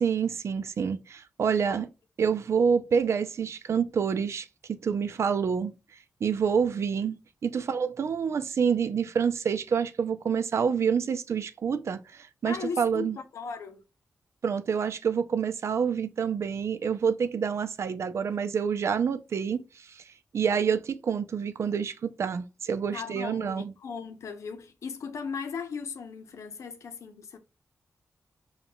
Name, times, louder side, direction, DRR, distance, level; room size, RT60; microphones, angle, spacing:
voice 1, 0.0-1.9 2.2-5.7 6.2-7.2 7.4-13.2 14.4-20.0 20.3-23.7, right 6 dB, 70° right, 0.4 m, -27 dB
voice 2, 12.4-13.8 22.9-27.4, left 5 dB, 85° left, 0.6 m, -37 dB
5.3 x 2.3 x 2.3 m
cardioid pair, 70°, 5 cm